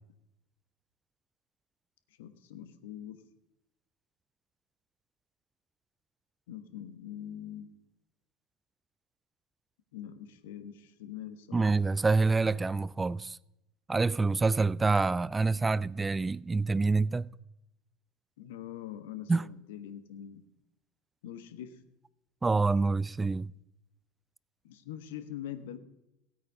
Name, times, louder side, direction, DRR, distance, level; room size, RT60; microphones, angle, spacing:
voice 1, 2.2-3.2 6.5-7.7 9.9-11.7 18.4-20.4 21.2-21.8 24.6-25.8, left 10 dB, 75° left, 1.3 m, -43 dB
voice 2, 11.5-13.4 13.9-17.3 19.3-19.5 22.4-23.5, right 3 dB, 15° right, 0.4 m, -27 dB
16.0 x 8.6 x 5.4 m
hypercardioid pair, 80°, 0 cm